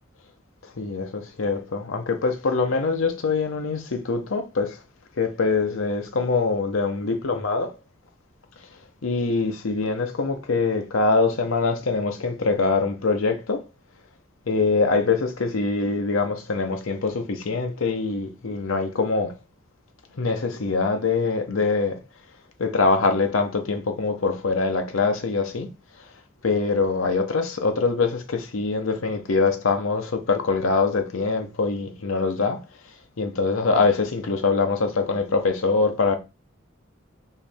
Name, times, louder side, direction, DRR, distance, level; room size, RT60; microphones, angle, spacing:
voice 1, 0.8-4.8 5.2-7.7 9.0-13.6 14.5-19.3 20.2-22.0 22.6-25.7 26.4-32.6 33.2-36.2, left 4 dB, 80° left, 0.7 m, -23 dB
4.5 x 3.1 x 3.4 m
head